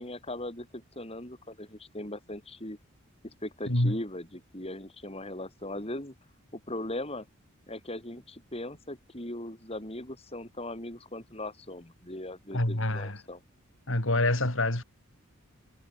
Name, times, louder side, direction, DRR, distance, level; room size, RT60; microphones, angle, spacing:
voice 1, 0.0-2.8 3.2-6.1 6.5-7.3 7.7-13.4, left 1 dB, 30° left, 6.0 m, -39 dB
voice 2, 3.7-4.0 12.5-13.2 13.9-14.8, left 1 dB, 60° left, 3.9 m, -26 dB
head